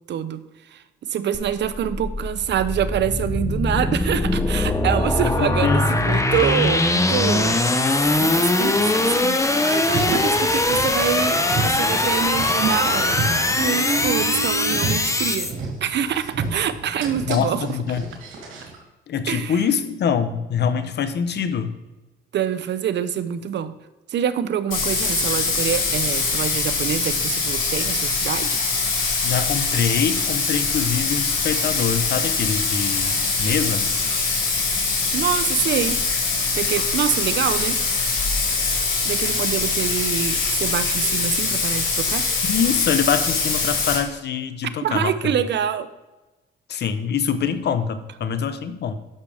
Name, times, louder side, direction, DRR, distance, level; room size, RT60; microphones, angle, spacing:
voice 1, 0.1-0.4 0.7-0.8 1.1-7.6 8.2-15.5 15.8-17.7 19.3-19.7 22.3-23.8 24.1-28.6 35.1-36.0 36.5-37.8 39.0-42.3 44.8-45.9, right 9 dB, 60° right, 13 dB, 0.7 m, -25 dB
sound 1, 1.3-15.5, left 2 dB, 15° left, 0.9 m, -21 dB
voice 2, 5.4-5.9 17.3-18.0 19.1-21.7 29.2-33.9 42.4-45.1 46.7-49.0, left 7 dB, 60° left, 10 dB, 0.9 m, -24 dB
Car, 9.8-18.8, right 3 dB, 90° right, 2.9 m, -30 dB
Bathtub (filling or washing), 24.7-44.0, left 4 dB, 80° left, 3.3 m, -23 dB
10.5 x 6.8 x 3.5 m, 1.1 s
cardioid pair, 90°, 20 cm